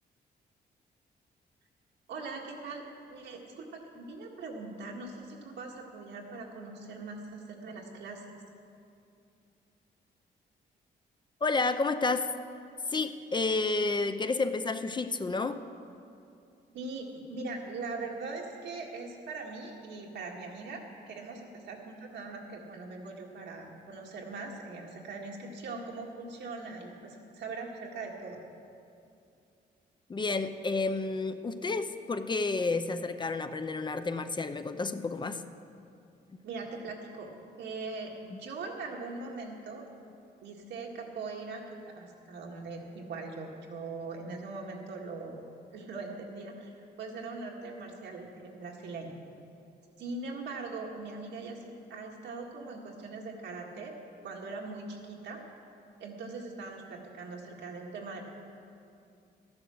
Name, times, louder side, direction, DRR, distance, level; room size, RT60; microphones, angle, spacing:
voice 1, 2.1-8.2 16.7-28.4 36.4-37.3 37.6-39.9 40.4-45.4 45.7-49.1 50.0-53.9 54.2-55.4 56.0-58.2, right 3 dB, 90° right, -1 dB, 1.9 m, -41 dB
voice 2, 11.4-12.3 12.9-15.6 30.1-35.4 38.3-38.4, left 3 dB, 25° left, 10 dB, 0.5 m, -30 dB
13.0 x 10.5 x 6.5 m, 2.6 s
cardioid pair, 115°, 18 cm